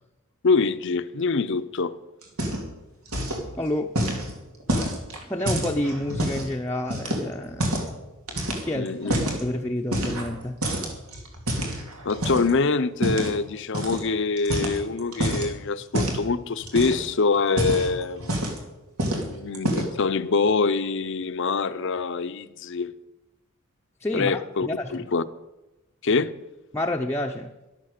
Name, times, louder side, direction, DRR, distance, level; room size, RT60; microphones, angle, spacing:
voice 1, 0.4-2.0 8.7-9.1 12.0-18.5 19.2-22.9 24.1-25.2 26.0-26.3, left 4 dB, 60° left, 0.7 m, -25 dB
sound 1, 2.2-2.8 3.1-3.5 4.0-6.5 6.9-7.9 8.3-9.4 9.9-10.4 10.6-12.5 13.0-13.3 13.7-14.0 14.4-15.5 15.9-16.2 16.6-17.1 17.4-18.7 19.0-19.3 19.5-20.0, right 1 dB, 85° right, 2.7 m, -27 dB
voice 2, 3.6-3.9 5.2-7.8 8.6-8.9 9.2-10.6 24.0-25.1 26.7-27.5, left 1 dB, 10° left, 0.7 m, -29 dB
13.0 x 12.0 x 6.6 m
head